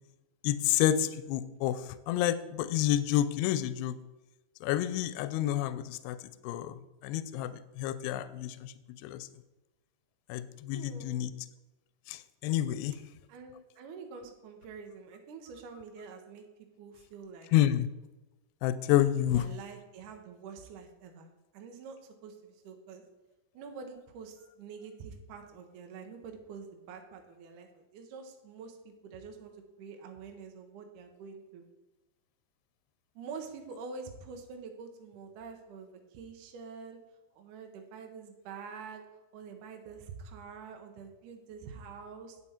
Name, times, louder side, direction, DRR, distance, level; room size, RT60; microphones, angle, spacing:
voice 1, 0.4-4.0 4.6-6.2 6.4-8.7 9.0-9.3 10.3-11.3 12.1-13.0 17.5-17.9 18.6-19.5, left 12 dB, 85° left, 14 dB, 2.5 m, -29 dB
voice 2, 10.7-11.2 13.3-16.5 16.8-17.5 19.3-21.3 21.5-23.0 23.5-31.6 33.2-37.0 37.3-39.0 39.3-42.4, right 5 dB, 80° right, 4 dB, 1.8 m, -46 dB
9.2 x 7.6 x 4.3 m, 1.1 s
omnidirectional pair, 4.9 m